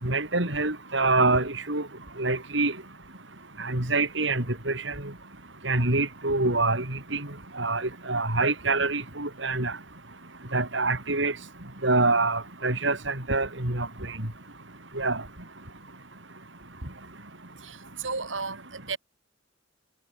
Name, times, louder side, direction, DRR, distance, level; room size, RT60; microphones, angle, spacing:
voice 1, 0.0-1.9 2.2-2.8 3.6-5.1 5.6-7.3 7.5-9.8 10.5-11.4 11.8-14.2 14.9-15.2, right 3 dB, 70° right, 6.1 m, -26 dB
voice 2, 17.6-19.0, right 4 dB, 90° right, 5.0 m, -34 dB
head